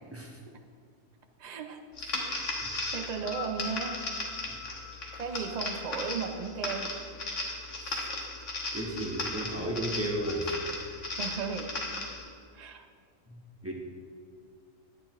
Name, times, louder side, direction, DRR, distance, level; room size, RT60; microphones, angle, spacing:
voice 1, 1.4-1.8 2.2-2.6 2.9-4.0 5.2-6.9 7.8-8.3 11.2-11.7 12.5-12.9, right 5 dB, 45° right, 5 dB, 0.5 m, -36 dB
sound 1, 2.0-12.2, left 2 dB, 65° left, 1.6 m, -36 dB
sound 2, 3.3-7.7 8.6-8.7, left 10 dB, 80° left, 1.1 m, -46 dB
voice 2, 8.7-10.5 13.3-13.4 13.6-13.7, right 1 dB, 10° right, -2 dB, 1.0 m, -33 dB
11.0 x 9.1 x 3.0 m, 2.2 s
omnidirectional pair, 1.4 m